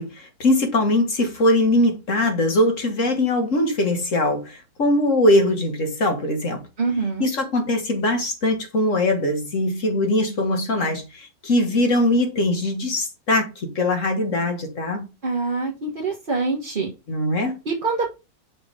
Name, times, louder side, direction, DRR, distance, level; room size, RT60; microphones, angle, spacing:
voice 1, 0.0-6.6 7.2-15.1 17.1-17.5, left 1 dB, 45° left, 1.8 m, -21 dB
voice 2, 6.8-7.3 15.2-16.9 17.6-18.1, right 4 dB, 30° right, 1.4 m, -25 dB
6.2 x 4.0 x 4.8 m
omnidirectional pair, 2.0 m